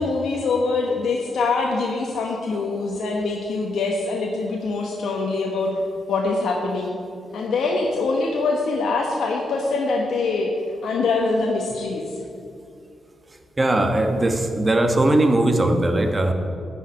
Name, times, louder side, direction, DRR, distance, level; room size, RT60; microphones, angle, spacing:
voice 1, 0.0-5.7 6.1-7.0 7.3-10.5 10.8-12.2, left 3 dB, 80° left, 0 dB, 1.1 m, -24 dB
voice 2, 13.6-16.3, right 1 dB, 25° right, 5 dB, 1.3 m, -19 dB
12.0 x 5.7 x 8.6 m, 2.4 s
cardioid pair, 100°, 0 cm